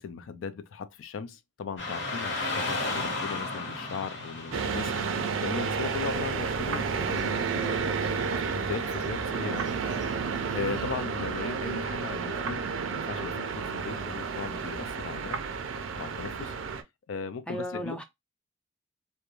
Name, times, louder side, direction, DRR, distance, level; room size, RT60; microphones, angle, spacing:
voice 1, 0.0-8.1 8.5-9.7 10.5-15.4 16.0-16.5 17.1-18.0, left 5 dB, 80° left, 0.4 m, -38 dB
Car passing by / Traffic noise roadway noise, 1.8-10.8, left 3 dB, 65° left, 1.0 m, -37 dB
sound 1, 4.5-16.8, right 5 dB, 90° right, 0.4 m, -31 dB
voice 2, 6.7-7.1 17.5-18.0, equal, 5° left, 0.3 m, -37 dB
2.3 x 2.1 x 2.9 m
head